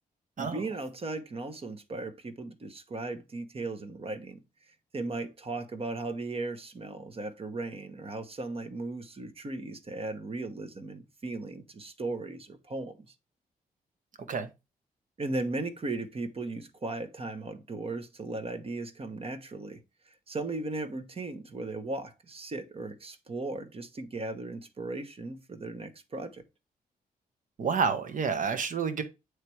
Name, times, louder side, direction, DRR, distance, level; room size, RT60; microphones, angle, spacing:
voice 1, 0.4-4.4 4.7-13.1 15.2-19.8 20.1-26.4, right 2 dB, 40° right, 1.2 m, -37 dB
voice 2, 27.6-29.0, right 5 dB, 60° right, 1.3 m, -29 dB
8.3 x 3.3 x 4.7 m
cardioid pair, 85°, 15 cm